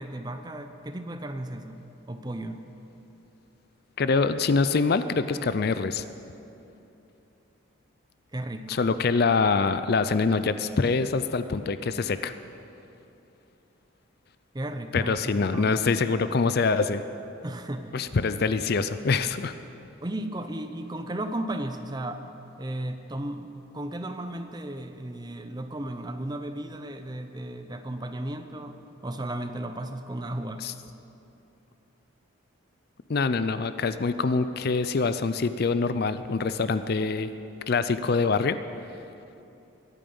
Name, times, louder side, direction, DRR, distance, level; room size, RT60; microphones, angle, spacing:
voice 1, 0.0-2.6 8.3-9.0 14.5-15.8 17.4-18.0 20.0-22.3 22.6-30.7, right 1 dB, 20° right, 8 dB, 0.6 m, -35 dB
voice 2, 4.0-6.0 8.7-12.3 14.9-17.0 17.9-19.5 30.6-30.7 33.1-37.3 37.7-38.6, left 4 dB, 45° left, 12 dB, 0.4 m, -25 dB
22.5 x 8.9 x 5.4 m, 2.8 s
head